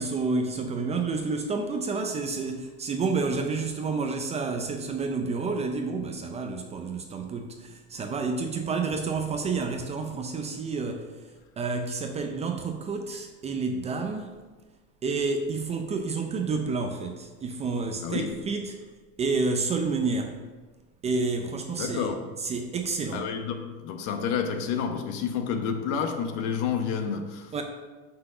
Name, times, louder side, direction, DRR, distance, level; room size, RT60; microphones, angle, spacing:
voice 1, 0.0-11.1 11.6-14.3 15.0-18.8 19.2-20.3 21.0-22.1 22.4-23.2 27.5-27.6, right 4 dB, 20° right, 5 dB, 0.5 m, -29 dB
voice 2, 18.0-18.4 21.7-22.3 23.1-27.6, left 6 dB, 55° left, 6 dB, 1.1 m, -30 dB
6.1 x 5.7 x 6.6 m, 1.3 s
cardioid pair, 160°, 33 cm